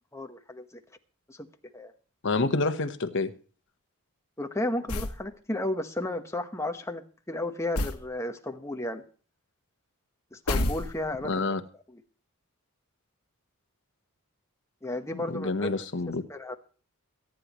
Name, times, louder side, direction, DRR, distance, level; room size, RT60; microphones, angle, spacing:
voice 1, 0.1-0.8 1.3-1.5 1.7-1.9 4.4-9.0 10.3-11.4 11.9-12.0 14.8-15.7 16.3-16.6, left 1 dB, 15° left, 1.1 m, -33 dB
voice 2, 2.2-3.3 11.2-11.6 15.1-16.2, left 3 dB, 55° left, 1.2 m, -28 dB
sound 1, 4.9-5.2 7.7-8.1 10.5-11.3, left 1 dB, 85° left, 1.2 m, -29 dB
23.0 x 10.0 x 3.1 m
head